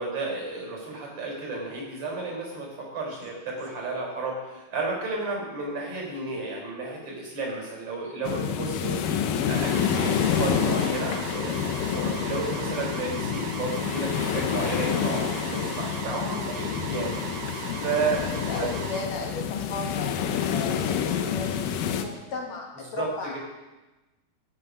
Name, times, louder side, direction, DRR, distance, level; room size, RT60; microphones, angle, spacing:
voice 1, 0.0-9.0 9.5-17.2 17.8-18.2 18.6-18.7 22.9-23.4, right 3 dB, 45° right, -1 dB, 5.3 m, -32 dB
sound 1, 8.2-22.0, left 8 dB, 80° left, 2.5 m, -28 dB
flanger alarm, 9.5-19.0, right 7 dB, 80° right, 2.8 m, -38 dB
voice 2, 18.3-20.2 20.5-21.5 21.9-23.4, left 3 dB, 55° left, 1 dB, 2.6 m, -35 dB
14.0 x 8.9 x 5.5 m, 1.1 s
omnidirectional pair, 4.0 m